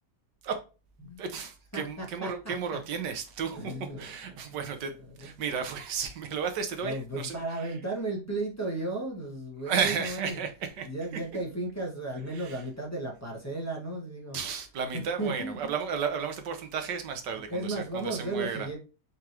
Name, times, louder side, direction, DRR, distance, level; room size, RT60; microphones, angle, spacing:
voice 1, 1.2-7.8 9.6-11.2 12.3-12.6 14.3-18.7, right 6 dB, 85° right, 1.6 m, -33 dB
voice 2, 1.7-2.8 3.5-4.1 5.2-5.3 6.8-10.4 10.8-14.4 14.9-15.7 17.5-18.8, right 2 dB, 10° left, 1.4 m, -34 dB
4.5 x 3.7 x 2.9 m
omnidirectional pair, 1.8 m